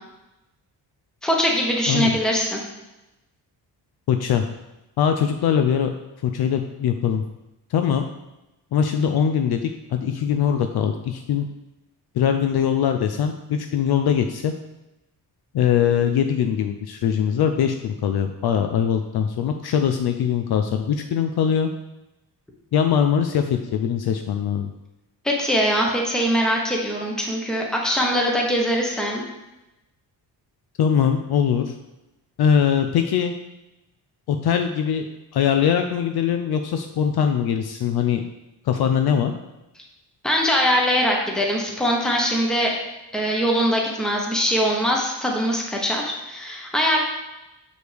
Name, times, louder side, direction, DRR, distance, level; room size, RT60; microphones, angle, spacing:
voice 1, 1.2-2.6 25.2-29.2 40.2-42.7 43.1-47.0, equal, ahead, -1 dB, 1.0 m, -22 dB
voice 2, 4.1-4.4 5.0-5.9 6.2-7.2 7.7-8.1 8.7-11.5 12.1-14.5 15.5-21.7 22.7-24.7 30.8-31.7 32.4-33.3 34.3-35.1 35.3-38.2 38.6-39.3, left 8 dB, 65° left, 6 dB, 0.5 m, -21 dB
6.3 x 5.0 x 3.4 m, 0.98 s
cardioid pair, 115°, 41 cm